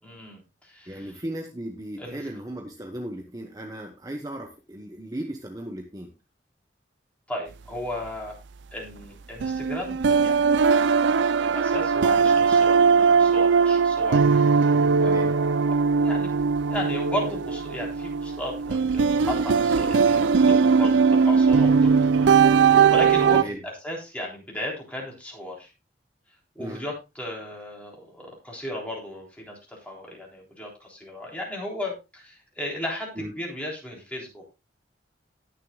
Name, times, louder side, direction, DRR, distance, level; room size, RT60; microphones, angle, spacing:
voice 1, 0.0-1.2 2.0-2.2 7.3-8.4 8.7-10.8 11.4-16.3 16.7-25.7 26.6-34.5, left 1 dB, 10° left, -2 dB, 3.6 m, -35 dB
voice 2, 0.9-6.1 15.0-15.4 23.3-23.6 26.6-26.8 33.2-33.3, right 1 dB, 20° right, 4 dB, 1.0 m, -36 dB
sound 1, 9.4-23.4, right 5 dB, 85° right, 0.4 m, -20 dB
19.0 x 6.7 x 2.3 m, 0.26 s
head